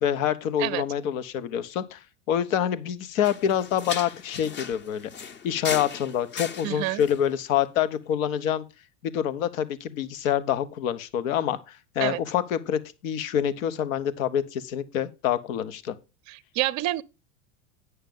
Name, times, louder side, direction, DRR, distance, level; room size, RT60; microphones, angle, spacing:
voice 1, 0.0-2.0 2.3-8.6 9.0-15.9, left 9 dB, 75° left, 1.2 m, -26 dB
sound 1, 3.2-7.3, left 6 dB, 25° left, 0.9 m, -37 dB
voice 2, 6.6-7.0 12.0-12.2 16.3-17.0, right 18 dB, 45° right, 0.6 m, -28 dB
9.4 x 6.5 x 5.3 m
supercardioid pair, 115°, 40 cm